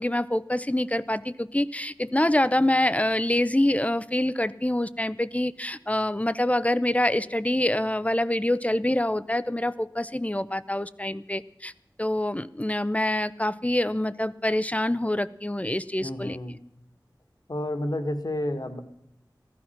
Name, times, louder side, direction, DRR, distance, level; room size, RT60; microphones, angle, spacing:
voice 1, 0.0-11.7 12.0-16.6, left 1 dB, 15° left, 16 dB, 0.7 m, -26 dB
voice 2, 16.0-16.5 17.5-18.8, left 1 dB, 55° left, 8 dB, 1.8 m, -30 dB
15.5 x 12.5 x 5.8 m, 0.77 s
wide cardioid pair, 45°, 8 cm